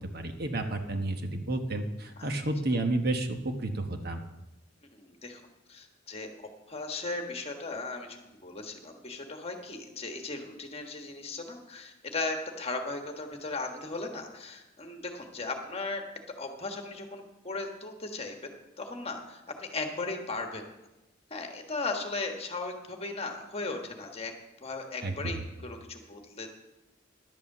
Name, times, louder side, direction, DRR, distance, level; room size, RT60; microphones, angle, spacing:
voice 1, 0.0-4.2 25.0-25.3, right 2 dB, 55° right, 5 dB, 1.2 m, -31 dB
voice 2, 4.9-5.4 5.7-16.0 16.4-20.6 21.3-24.3 24.6-26.5, left 3 dB, 30° left, 4 dB, 1.5 m, -37 dB
11.5 x 8.3 x 7.2 m, 1.0 s
head